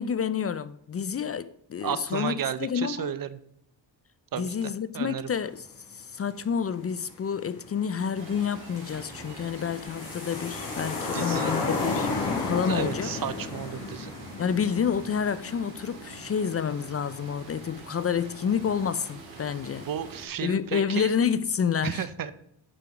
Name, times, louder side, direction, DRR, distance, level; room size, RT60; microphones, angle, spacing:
voice 1, 0.0-3.1 4.3-5.6 5.9-12.1 12.4-13.1 14.4-19.9 20.4-22.1, left 7 dB, 35° left, 0.5 m, -29 dB
voice 2, 1.8-3.3 4.3-5.3 11.1-11.6 12.6-14.1 19.8-21.1 21.8-22.3, right 9 dB, 50° right, 0.8 m, -33 dB
sound 1, 7.1-7.2 7.6-17.3 17.6-17.7, left 3 dB, 60° left, 3.5 m, -33 dB
sound 2, 8.1-20.3, right 3 dB, 85° right, 3.9 m, -46 dB
9.7 x 6.7 x 5.2 m
cardioid pair, 80°, 43 cm